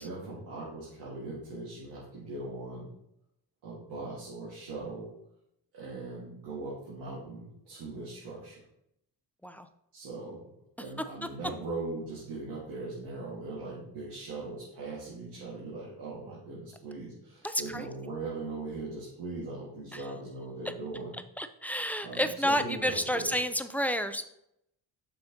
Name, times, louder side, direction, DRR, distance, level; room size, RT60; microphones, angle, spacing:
voice 1, 0.0-2.9 3.6-5.1 5.7-8.6 9.9-10.5 10.8-21.2 22.0-23.3, right 3 dB, 90° right, -5 dB, 1.9 m, -40 dB
voice 2, 17.4-17.8 21.4-24.3, equal, 5° left, 9 dB, 0.5 m, -30 dB
7.7 x 5.7 x 2.9 m, 0.78 s
cardioid pair, 75°, 40 cm